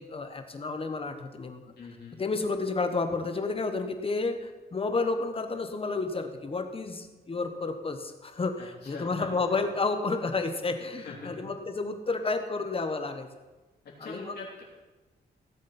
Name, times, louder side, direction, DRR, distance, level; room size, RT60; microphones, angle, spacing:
voice 1, 0.0-1.6 2.2-13.3 14.0-14.4, left 3 dB, 35° left, 7 dB, 1.1 m, -31 dB
voice 2, 1.8-2.2 8.6-9.4 11.0-11.5 13.8-14.6, left 3 dB, 70° left, -4 dB, 3.4 m, -43 dB
17.0 x 7.4 x 4.3 m, 1.2 s
wide cardioid pair, 115°, 17 cm